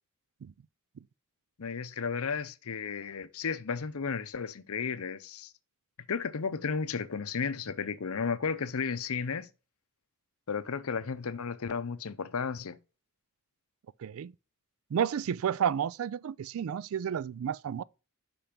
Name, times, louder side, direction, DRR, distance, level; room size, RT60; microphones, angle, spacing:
voice 1, 1.6-5.5 6.1-9.5 10.5-12.8, left 5 dB, 75° left, 0.6 m, -33 dB
voice 2, 14.0-14.3 14.9-17.8, right 8 dB, 70° right, 0.3 m, -31 dB
5.9 x 5.2 x 5.7 m
head